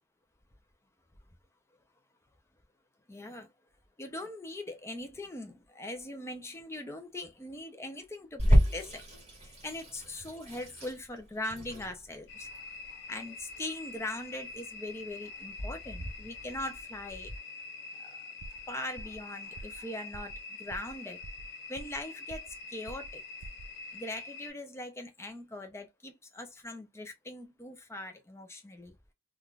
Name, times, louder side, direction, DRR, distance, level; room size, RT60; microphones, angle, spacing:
voice 1, 3.1-3.5 4.0-9.0 9.4-12.5 13.1-17.3 18.0-18.2 18.7-21.2 21.7-23.2 23.9-29.0, left 1 dB, 15° left, 0.5 m, -41 dB
Water tap faucet / Sink (filling or washing), 8.4-17.4, equal, 30° right, 1.9 m, -32 dB
sound 1, 12.3-24.5, left 3 dB, 55° left, 0.6 m, -45 dB
sound 2, 18.4-18.7 19.0-19.2 19.6-19.8 20.1-20.4 20.7-21.0 21.2-22.0 22.3-22.6 22.9-23.2 23.4-23.7, right 2 dB, 75° right, 0.5 m, -46 dB
3.5 x 2.4 x 2.3 m
head